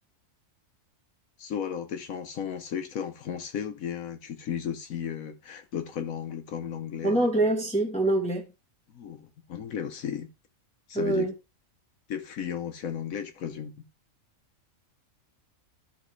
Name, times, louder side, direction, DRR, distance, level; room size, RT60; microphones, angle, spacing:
voice 1, 1.4-7.3 8.9-10.3 10.9-11.3 12.1-13.8, left 8 dB, 75° left, 1.2 m, -34 dB
voice 2, 7.0-8.5 10.9-11.3, right 2 dB, 5° left, 1.2 m, -25 dB
12.0 x 4.1 x 3.1 m
omnidirectional pair, 1.5 m